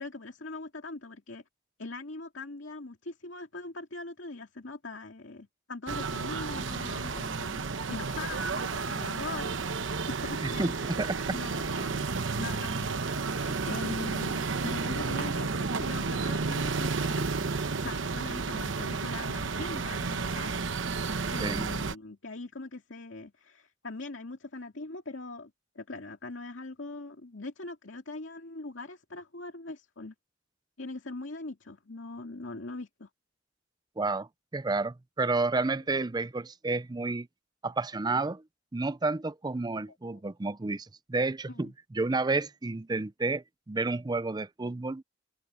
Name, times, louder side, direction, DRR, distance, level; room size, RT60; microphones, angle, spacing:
voice 1, 0.0-1.4 1.8-9.6 9.9-10.7 11.3-20.5 21.3-30.1 30.8-33.1 40.1-40.2 41.5-41.7, left 3 dB, 70° left, 2.5 m, -41 dB
sound 1, 5.9-22.0, right 4 dB, 75° right, 1.0 m, -32 dB
voice 2, 10.4-11.4 21.4-21.7 34.0-34.3 34.5-37.3 37.6-38.4 38.7-45.0, right 3 dB, 20° right, 0.5 m, -30 dB
head